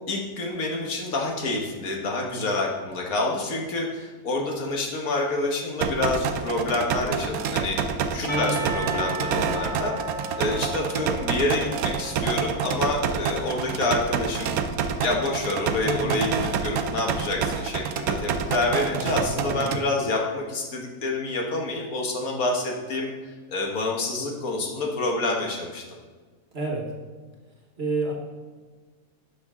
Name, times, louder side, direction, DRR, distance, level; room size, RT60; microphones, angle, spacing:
voice 1, 0.1-7.8 8.1-9.9 10.4-14.5 15.0-23.1 23.5-25.8, left 2 dB, 70° left, 1 dB, 1.6 m, -27 dB
sound 1, 5.8-19.8, right 6 dB, 80° right, 1.0 m, -28 dB
voice 2, 8.2-8.7 15.8-16.2 18.9-19.8 26.5-26.9 27.8-28.1, right 2 dB, 45° right, 0 dB, 1.4 m, -30 dB
Percussion, 8.3-13.1, right 2 dB, 25° left, 2.0 m, -35 dB
11.5 x 5.3 x 3.6 m, 1.4 s
omnidirectional pair, 1.5 m